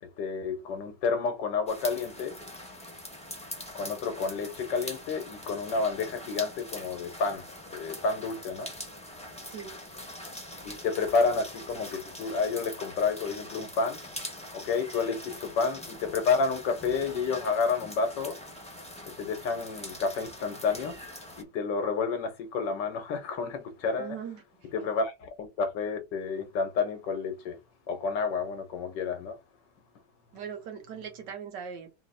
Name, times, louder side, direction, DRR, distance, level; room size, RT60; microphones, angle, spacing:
voice 1, 0.0-2.4 3.7-7.5 7.7-9.0 10.6-14.0 14.5-18.4 19.2-21.0 21.4-24.2 24.7-27.6 27.9-29.4, left 4 dB, 85° left, 1.7 m, -30 dB
sound 1, 1.7-21.4, left 1 dB, 5° left, 0.8 m, -43 dB
voice 2, 24.0-24.4 30.3-31.9, right 7 dB, 80° right, 1.6 m, -39 dB
4.0 x 2.9 x 4.1 m
omnidirectional pair, 1.9 m